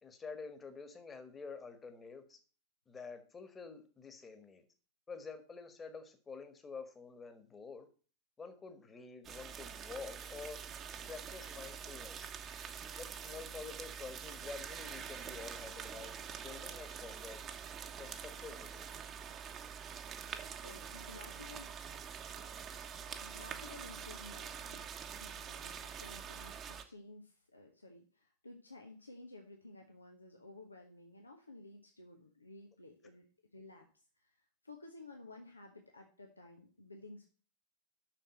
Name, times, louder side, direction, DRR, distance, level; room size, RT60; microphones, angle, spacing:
voice 1, 0.0-2.4 2.9-4.6 5.1-7.9 8.4-10.6 11.1-12.3 13.0-17.4 18.0-18.9, left 4 dB, 20° left, 8 dB, 1.6 m, -48 dB
sound 1, 9.2-26.8, right 7 dB, 30° right, 1.2 m, -46 dB
voice 2, 20.6-21.8 23.2-33.3 33.5-33.9 34.2-37.3, left 2 dB, 80° left, 2 dB, 1.2 m, -54 dB
7.4 x 6.5 x 7.6 m, 0.39 s
figure-of-eight pair, 90°, 0 cm